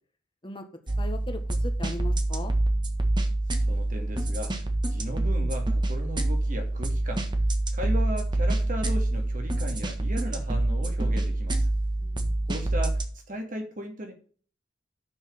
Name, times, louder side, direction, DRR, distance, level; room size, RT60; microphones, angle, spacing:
sound 1, 0.9-13.1, right 1 dB, 25° right, 1.4 m, -26 dB
voice 1, 1.0-2.5 12.0-12.4, left 1 dB, 30° left, 6 dB, 1.6 m, -38 dB
voice 2, 3.5-7.2 7.7-11.7 12.5-13.0 13.3-14.1, equal, 50° right, 4 dB, 2.4 m, -36 dB
7.2 x 6.5 x 7.2 m, 0.42 s
head